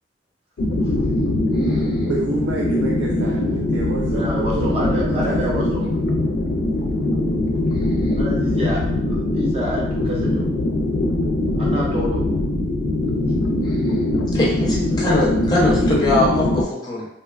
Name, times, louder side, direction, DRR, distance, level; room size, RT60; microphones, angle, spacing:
sound 1, 0.6-16.6, left 1 dB, 75° left, 0.4 m, -21 dB
voice 1, 1.6-2.1 7.8-8.1 13.6-13.9 14.3-17.1, left 1 dB, 20° left, -5 dB, 0.5 m, -22 dB
voice 2, 2.1-5.7, right 3 dB, 80° right, -2 dB, 0.3 m, -29 dB
voice 3, 4.1-5.8 8.2-10.5 11.6-12.3, equal, 30° right, -4 dB, 0.6 m, -28 dB
2.7 x 2.2 x 2.3 m, 0.78 s
head